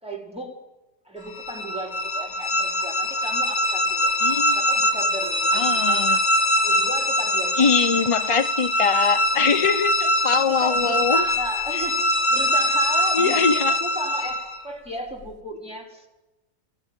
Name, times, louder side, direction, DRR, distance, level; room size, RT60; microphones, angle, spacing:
voice 1, 0.0-0.6 1.0-4.1 4.5-6.2 6.5-7.7 8.3-8.4 9.4-9.5 10.4-12.0 12.3-16.1, equal, 5° right, 4.9 m, -35 dB
sound 1, 1.3-14.6, left 1 dB, 70° left, 3.3 m, -23 dB
voice 2, 4.2-4.6 5.5-6.2 7.6-11.3 13.1-13.8, left 5 dB, 35° left, 0.5 m, -22 dB
21.0 x 16.0 x 9.1 m
omnidirectional pair, 1.6 m